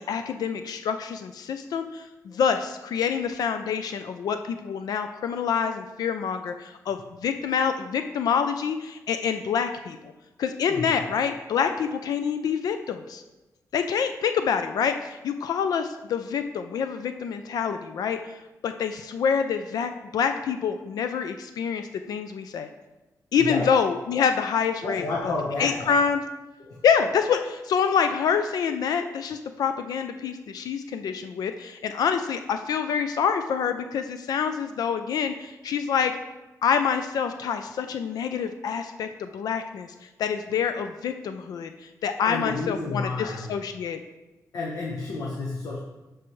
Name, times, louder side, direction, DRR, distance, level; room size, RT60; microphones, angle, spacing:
voice 1, 0.0-10.0 10.4-13.2 13.7-18.2 18.6-22.7 23.3-25.3 25.6-26.2 26.8-36.1 36.6-39.9 40.2-41.7 42.0-44.0, left 7 dB, 90° left, 8 dB, 0.4 m, -26 dB
voice 2, 10.7-11.0 23.4-23.8 24.8-26.0 26.6-26.8 42.2-43.5 44.5-45.8, left 3 dB, 70° left, -2 dB, 1.0 m, -31 dB
12.0 x 4.6 x 3.1 m, 1.1 s
wide cardioid pair, 135°, 6 cm